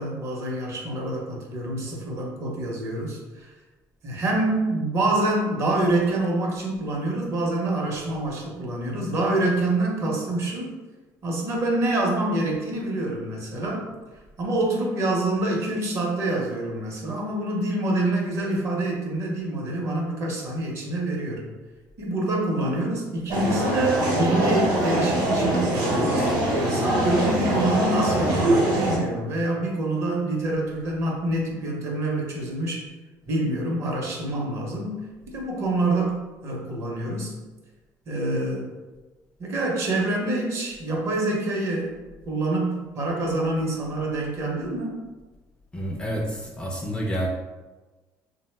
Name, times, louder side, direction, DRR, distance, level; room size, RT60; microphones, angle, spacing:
voice 1, 0.0-3.5 4.0-10.7 11.2-13.9 14.4-21.4 22.0-32.9 33.3-37.3 38.1-38.7 39.4-45.0, right 2 dB, 40° right, -1 dB, 0.7 m, -26 dB
sound 1, 23.3-29.0, right 1 dB, 75° right, 0.8 m, -23 dB
voice 2, 45.7-47.3, equal, 15° left, -1 dB, 0.3 m, -29 dB
2.8 x 2.0 x 3.2 m, 1.2 s
cardioid pair, 140°, 7 cm